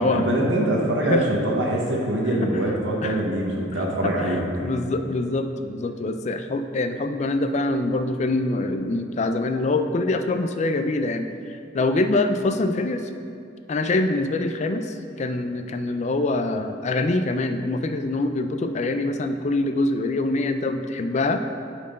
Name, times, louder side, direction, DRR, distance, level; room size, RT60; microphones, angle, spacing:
voice 1, 0.0-4.7, right 1 dB, 75° right, -2 dB, 0.9 m, -24 dB
voice 2, 3.8-13.1 13.7-21.4, left 2 dB, 35° left, 8 dB, 0.4 m, -25 dB
8.2 x 4.5 x 5.0 m, 2.4 s
head